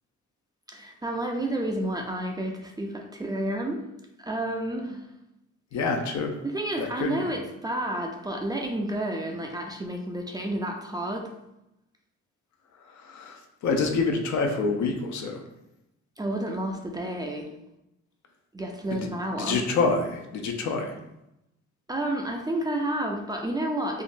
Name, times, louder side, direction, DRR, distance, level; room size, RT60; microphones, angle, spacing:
voice 1, 0.7-3.8 4.2-5.1 6.4-11.3 16.2-17.5 18.5-19.7 21.9-24.0, right 1 dB, 15° right, 1 dB, 0.4 m, -30 dB
voice 2, 5.7-6.4 6.8-7.4 12.9-15.4 18.9-21.0, left 4 dB, 70° left, 4 dB, 0.6 m, -27 dB
3.7 x 2.0 x 2.5 m, 0.88 s
cardioid pair, 90°, 30 cm